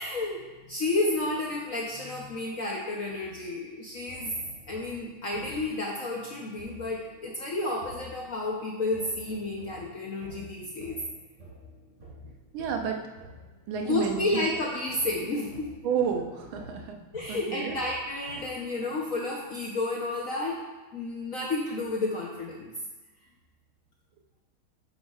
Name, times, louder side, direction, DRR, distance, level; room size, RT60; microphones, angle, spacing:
voice 1, 0.0-4.4 4.7-11.0 13.8-15.7 17.1-20.6 20.9-22.7, left 2 dB, 60° left, -3 dB, 0.9 m, -31 dB
sound 1, 3.2-3.6 4.1-19.4, equal, 35° right, 2.8 m, -50 dB
voice 2, 12.5-13.0 13.7-14.4 15.8-17.0 17.3-17.8, right 7 dB, 70° right, 3 dB, 1.6 m, -30 dB
9.3 x 7.1 x 2.4 m, 1.2 s
omnidirectional pair, 2.4 m